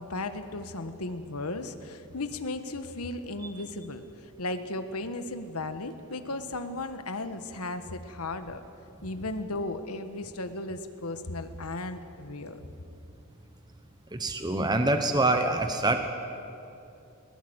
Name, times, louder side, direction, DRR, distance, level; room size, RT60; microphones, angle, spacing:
voice 1, 0.0-4.0 4.4-8.6 9.0-12.6, left 2 dB, 85° left, 9 dB, 1.4 m, -35 dB
voice 2, 14.1-16.0, right 2 dB, 20° right, 6 dB, 1.1 m, -25 dB
21.5 x 19.5 x 8.1 m, 2.7 s
head